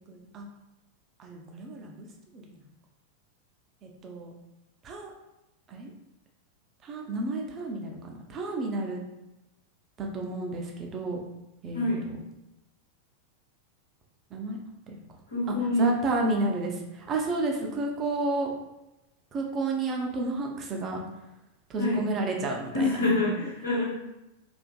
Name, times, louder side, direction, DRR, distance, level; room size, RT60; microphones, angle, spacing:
voice 1, 0.1-0.5 1.2-2.1 2.3-2.6 3.8-4.3 4.8-5.1 5.7-5.9 6.8-9.0 10.0-11.2 11.6-12.2 14.3-14.6 14.9-15.0 15.5-18.5 19.3-21.0 21.7-23.0, right 2 dB, 30° right, 1 dB, 0.4 m, -31 dB
voice 2, 11.7-12.1 15.3-16.3 21.8-22.0 22.7-23.8, left 1 dB, 75° left, -6 dB, 1.0 m, -26 dB
2.4 x 2.4 x 2.2 m, 0.94 s
figure-of-eight pair, 90°, 0 cm